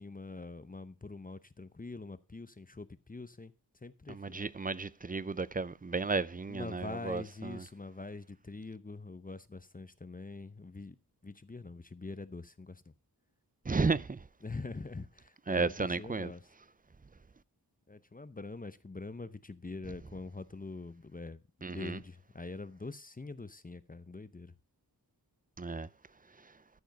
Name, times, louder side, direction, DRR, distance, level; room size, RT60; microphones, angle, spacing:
voice 1, 0.0-3.5 3.8-4.4 6.5-11.0 11.2-12.9 14.4-16.5 17.9-21.4 21.7-24.5, left 3 dB, 20° left, 0.7 m, -44 dB
voice 2, 4.1-7.6 13.7-14.2 15.5-16.3 21.6-22.0 25.6-25.9, right 4 dB, 20° right, 0.5 m, -33 dB
13.5 x 5.1 x 5.2 m
wide cardioid pair, 65°, 39 cm